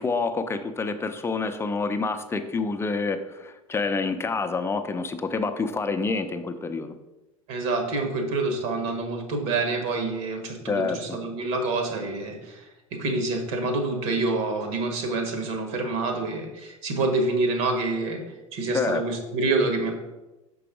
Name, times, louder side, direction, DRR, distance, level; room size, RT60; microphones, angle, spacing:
voice 1, 0.0-6.9 10.7-11.2 18.7-19.0, left 4 dB, 15° left, 8 dB, 0.6 m, -27 dB
voice 2, 7.5-18.2 18.5-19.9, right 3 dB, 55° right, 4 dB, 1.6 m, -27 dB
6.7 x 4.7 x 5.0 m, 1.0 s
figure-of-eight pair, 75°, 17 cm